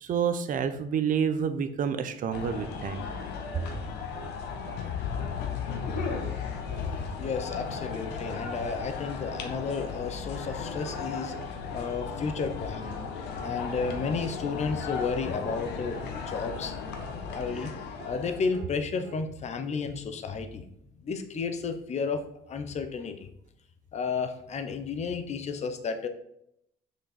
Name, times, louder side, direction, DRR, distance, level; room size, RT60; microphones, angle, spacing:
voice 1, 0.0-3.0, right 7 dB, 50° right, 9 dB, 0.9 m, -28 dB
sound 1, 2.3-18.6, left 5 dB, 85° left, 1.2 m, -36 dB
sound 2, 3.1-3.4 3.6-3.8 4.1-4.4 4.7-4.9 5.2-5.4 5.7-5.9 6.2-6.4 6.7-6.9 7.2-7.5 7.7-8.0 8.2-8.5 8.8-9.0 9.3-9.5 9.8-10.0 10.3-10.5 10.8-11.0 11.3-11.6 11.8-12.1 12.3-12.6 12.9-13.1 13.4-13.6 13.9-14.1 14.4-14.6 14.9-15.2 15.4-15.7 15.9-16.2 16.5-16.7 17.0-17.2 17.5-17.7 18.0-18.2 18.5-18.8 19.0-19.3, right 9 dB, 90° right, 0.9 m, -48 dB
sound 3, 4.7-9.5, left 11 dB, 65° left, 0.5 m, -37 dB
voice 2, 7.2-11.3 11.7-13.0 13.4-16.7 17.3-17.7 18.0-20.7 21.0-22.2 22.5-23.3 23.9-26.1, left 5 dB, 40° left, 7 dB, 1.0 m, -32 dB
6.4 x 5.2 x 4.3 m, 0.74 s
cardioid pair, 110°, 17 cm